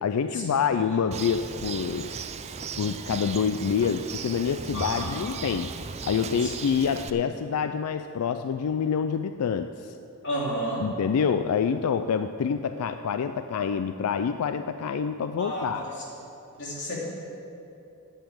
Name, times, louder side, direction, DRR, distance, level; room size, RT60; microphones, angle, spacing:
voice 1, 0.0-2.1 2.8-5.7 6.0-10.0 10.8-15.8, left 6 dB, 90° left, 10 dB, 0.4 m, -27 dB
Bird, 1.1-7.1, right 5 dB, 30° right, 0.4 m, -36 dB
voice 2, 4.7-5.3 6.4-6.5 10.2-10.8 15.4-15.9 16.6-17.0, equal, 55° left, -5 dB, 3.0 m, -31 dB
9.2 x 7.7 x 8.7 m, 2.8 s
head